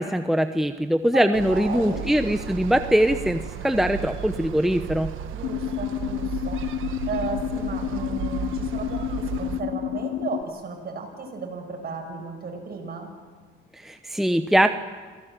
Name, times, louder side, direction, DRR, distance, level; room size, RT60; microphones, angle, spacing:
voice 1, 0.0-5.1 13.8-14.7, equal, ahead, 8 dB, 0.9 m, -22 dB
voice 2, 1.1-2.1 5.3-13.1, right 4 dB, 50° right, 3 dB, 6.3 m, -35 dB
sound 1, 1.3-9.6, right 10 dB, 85° right, 1.4 m, -34 dB
sound 2, 5.4-10.4, left 12 dB, 70° left, 0.6 m, -30 dB
27.5 x 17.5 x 7.6 m, 1.5 s
cardioid pair, 90°, 20 cm